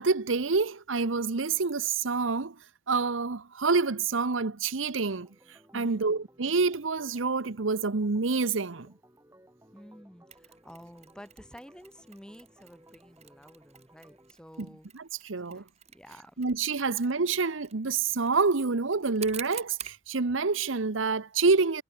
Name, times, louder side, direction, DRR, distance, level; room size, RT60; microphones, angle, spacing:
voice 1, 0.0-2.6 2.9-5.3 5.7-8.9 14.6-14.7 14.9-15.6 16.4-21.8, right 4 dB, 90° right, 1.0 m, -27 dB
Organ, 5.0-14.3, right 1 dB, 15° right, 5.7 m, -59 dB
voice 2, 5.7-6.1 9.7-14.9 15.5-16.4, equal, 5° left, 5.4 m, -50 dB
Mechanisms, 10.3-20.0, right 10 dB, 35° right, 2.6 m, -49 dB
head